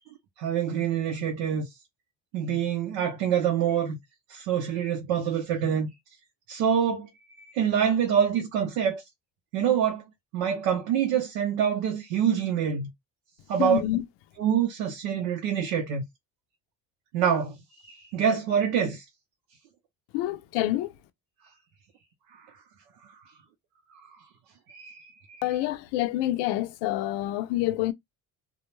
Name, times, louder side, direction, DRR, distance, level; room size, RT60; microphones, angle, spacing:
voice 1, 0.4-1.7 2.3-4.0 4.3-5.9 6.5-7.1 7.5-9.0 9.5-10.0 10.3-12.9 13.5-13.8 14.4-16.0 17.1-19.0 24.7-25.0 25.3-25.4, right 8 dB, 85° right, 0.7 m, -26 dB
voice 2, 13.6-14.0 20.1-20.9 25.4-27.9, left 15 dB, 70° left, 0.5 m, -27 dB
2.3 x 2.1 x 3.0 m
supercardioid pair, 70°, 44 cm